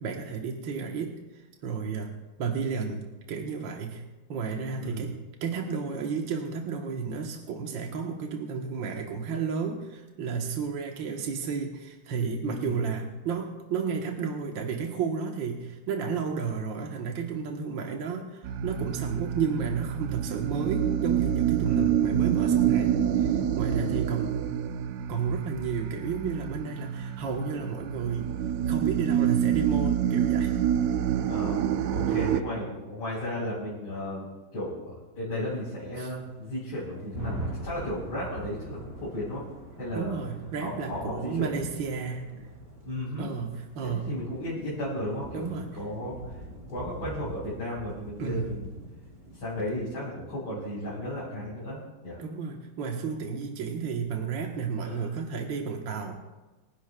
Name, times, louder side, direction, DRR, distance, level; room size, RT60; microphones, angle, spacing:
voice 1, 0.0-3.0 3.3-4.0 4.3-24.4 25.1-28.3 28.7-30.6 32.1-32.3 36.0-36.1 39.9-42.3 43.2-44.1 45.3-45.7 48.2-48.6 52.2-56.2, right 5 dB, 70° right, 2 dB, 1.8 m, -32 dB
voice 2, 12.5-12.8 21.6-22.1 23.7-24.0 31.3-34.3 34.5-39.4 39.8-40.2 40.6-41.6 42.8-43.3 43.8-46.4 46.7-48.7 49.3-52.2 54.8-55.1, left 1 dB, 80° left, -8 dB, 4.9 m, -34 dB
sound 1, 18.4-32.4, right 9 dB, 90° right, 0.7 m, -27 dB
sound 2, 35.5-49.9, right 1 dB, 45° right, 4.1 m, -42 dB
26.5 x 10.5 x 2.2 m, 1.2 s
omnidirectional pair, 2.1 m